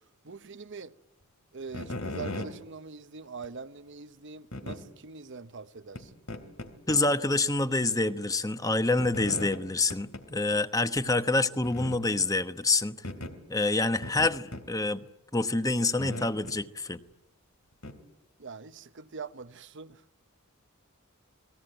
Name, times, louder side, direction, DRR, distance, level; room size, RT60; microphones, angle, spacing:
voice 1, 0.2-0.9 1.5-6.2 18.4-20.0, right 4 dB, 60° right, 0.9 m, -43 dB
sound 1, 1.7-2.5 3.4-3.5 4.5-4.8 5.9-6.0 6.3-7.0 7.3-7.4 9.0-9.6 9.9-10.2 10.5-10.6 11.0-11.1 11.6-12.0 13.0-13.3 14.0-14.7 16.0-16.6 17.8-18.0, left 1 dB, 85° left, 3.1 m, -37 dB
voice 2, 6.9-13.0 13.5-15.0 15.3-17.0, left 2 dB, 15° left, 1.1 m, -27 dB
29.5 x 21.0 x 9.0 m
head